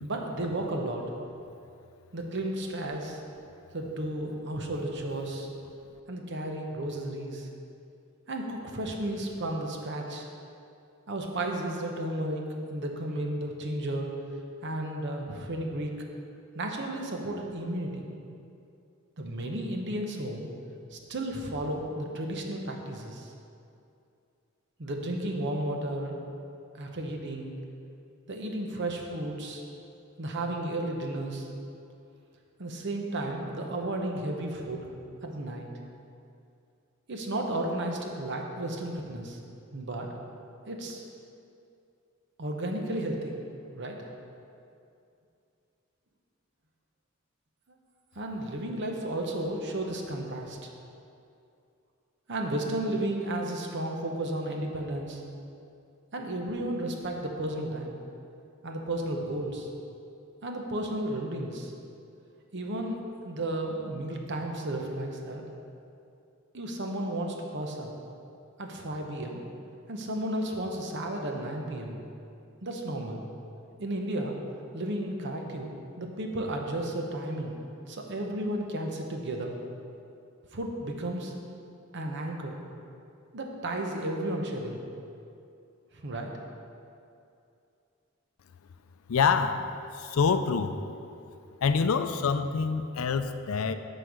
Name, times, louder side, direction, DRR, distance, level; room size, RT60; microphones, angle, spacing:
voice 1, 0.0-1.0 2.1-3.2 3.7-5.5 6.1-7.5 8.3-10.3 11.1-12.4 12.7-14.1 14.6-16.1 16.5-18.0 19.2-20.5 20.9-23.3 24.8-26.2 26.7-27.5 28.3-29.6 30.2-31.5 32.6-34.8 35.2-35.7 37.1-39.4 39.7-40.1 40.7-41.0 42.4-43.4 43.7-44.0 48.1-50.7 52.3-55.2 56.1-58.0 58.6-59.7 60.4-61.7 62.5-63.0 63.2-65.4 66.5-67.9 68.6-69.4 69.9-72.0 72.6-73.2 73.8-74.4 74.7-77.5 77.9-79.6 80.5-81.3 81.9-82.6 83.3-84.8 86.0-86.3, right 1 dB, 60° right, 2 dB, 0.9 m, -33 dB
voice 2, 89.1-90.8 91.6-93.8, left 5 dB, 90° left, 10 dB, 0.4 m, -26 dB
8.1 x 4.5 x 6.4 m, 2.6 s
head